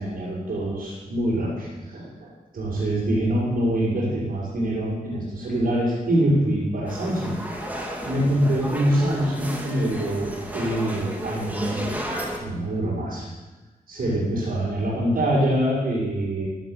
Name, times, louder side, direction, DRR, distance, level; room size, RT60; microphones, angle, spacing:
voice 1, 0.0-7.3 8.0-12.0 12.4-13.3 13.9-16.5, right 1 dB, 70° right, -8 dB, 5.7 m, -25 dB
sound 1, 6.9-12.4, right 1 dB, 10° right, 2.9 m, -33 dB
15.0 x 10.0 x 8.1 m, 1.2 s
wide cardioid pair, 100°, 16 cm